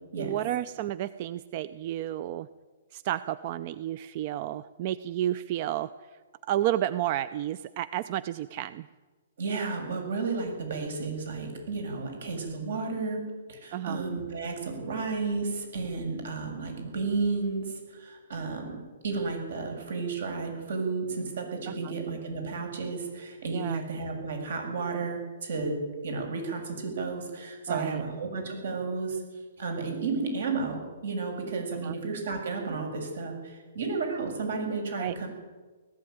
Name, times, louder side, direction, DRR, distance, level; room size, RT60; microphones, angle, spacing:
voice 1, 0.2-2.5 2.9-5.9 6.5-8.9 13.7-14.0 21.7-21.9 23.5-23.8 27.7-28.0 31.8-31.9 35.0-35.2, right 12 dB, 40° right, 15 dB, 0.5 m, -31 dB
voice 2, 9.4-29.2 29.6-35.3, right 4 dB, 75° right, 4 dB, 7.5 m, -32 dB
19.0 x 14.5 x 9.4 m, 1.4 s
hypercardioid pair, 160°, 0 cm